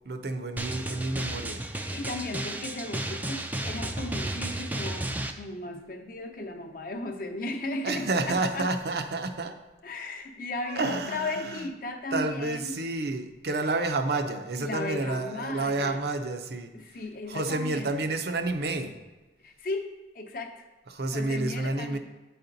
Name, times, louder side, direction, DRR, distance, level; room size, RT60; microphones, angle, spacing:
voice 1, 0.0-1.6 7.8-9.5 10.7-11.6 12.1-16.7 17.3-19.0 20.9-22.0, right 2 dB, 65° right, 7 dB, 0.6 m, -30 dB
Drum, 0.6-5.3, right 1 dB, 10° right, 0.3 m, -33 dB
voice 2, 1.9-8.7 9.8-12.8 14.6-16.1 16.7-17.9 19.4-20.6 21.1-22.0, left 2 dB, 50° left, 4 dB, 0.7 m, -36 dB
9.1 x 4.2 x 3.9 m, 1.2 s
head